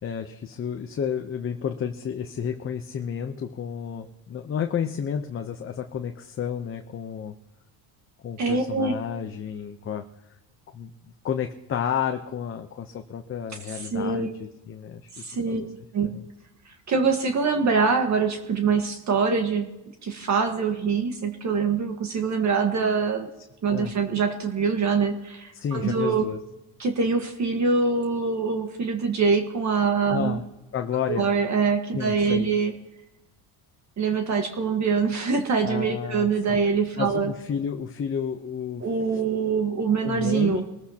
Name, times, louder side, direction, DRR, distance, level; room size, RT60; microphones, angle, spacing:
voice 1, 0.0-7.3 8.2-10.1 10.7-10.9 11.2-15.7 16.1-16.2 23.7-23.9 25.5-26.4 30.1-30.4 30.7-31.3 31.9-32.5 35.6-36.6 37.0-38.9 40.0-40.6, left 8 dB, 30° left, 5 dB, 0.8 m, -31 dB
voice 2, 8.4-8.9 13.9-14.3 15.1-15.6 15.9-16.2 16.9-19.7 20.0-23.3 23.6-26.2 26.8-30.4 31.1-32.7 34.0-37.3 38.8-40.6, right 5 dB, 35° right, 4 dB, 1.6 m, -24 dB
24.0 x 14.5 x 2.9 m, 0.98 s
cardioid pair, 125°, 46 cm